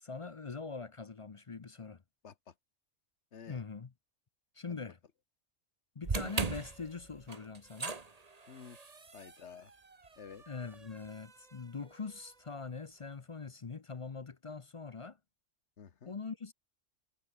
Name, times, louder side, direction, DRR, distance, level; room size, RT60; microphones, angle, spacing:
voice 1, 0.0-2.0 3.5-3.9 4.5-5.0 6.0-8.0 10.5-15.2 16.0-16.5, left 4 dB, 35° left, 0.6 m, -43 dB
voice 2, 2.2-2.5 3.3-3.6 4.7-4.8 8.5-8.8 9.1-9.7 10.2-10.4 15.8-16.1, left 7 dB, 60° left, 1.6 m, -51 dB
sound 1, 6.0-12.3, right 4 dB, 30° right, 1.5 m, -41 dB
omnidirectional pair, 1.3 m